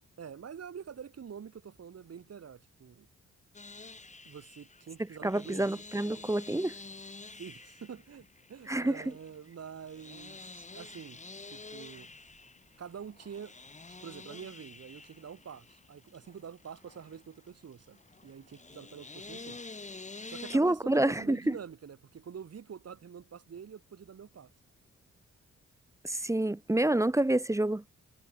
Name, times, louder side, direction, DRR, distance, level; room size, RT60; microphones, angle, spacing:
voice 1, 0.2-3.1 4.3-5.7 7.4-12.1 12.8-13.6 14.0-19.6 20.3-24.5 26.4-26.5, right 7 dB, 55° right, 2.5 m, -46 dB
sound 1, 3.5-20.6, left 3 dB, 25° left, 1.8 m, -49 dB
voice 2, 5.2-6.7 8.7-9.0 20.5-21.6 26.0-27.8, right 1 dB, 10° right, 0.6 m, -28 dB
cardioid pair, 75°, 29 cm